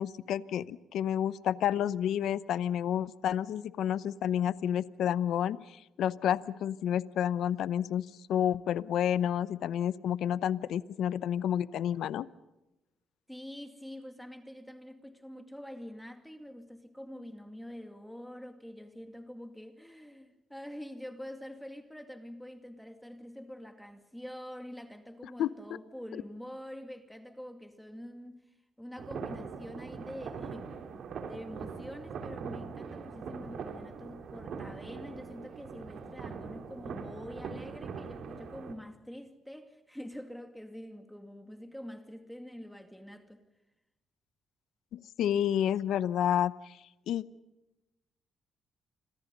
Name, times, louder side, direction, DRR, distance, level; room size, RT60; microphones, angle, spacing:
voice 1, 0.0-12.3 25.4-25.5 26.1-26.2 44.9-47.2, left 10 dB, 75° left, 0.8 m, -30 dB
voice 2, 13.3-43.4, equal, ahead, 2.3 m, -46 dB
sound 1, 29.0-38.7, right 5 dB, 65° right, 3.3 m, -42 dB
30.0 x 26.0 x 5.3 m
cardioid pair, 90°, 0 cm